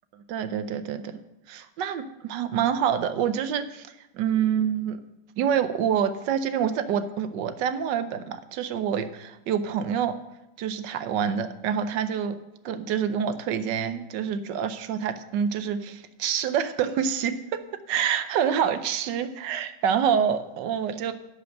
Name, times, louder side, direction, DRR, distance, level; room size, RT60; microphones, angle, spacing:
voice 1, 0.3-1.2 1.5-3.9 4.1-5.0 5.4-10.1 10.6-12.4 12.6-17.4 17.9-21.1, right 8 dB, 80° right, 10 dB, 1.3 m, -27 dB
11.0 x 5.1 x 7.7 m, 0.94 s
omnidirectional pair, 2.0 m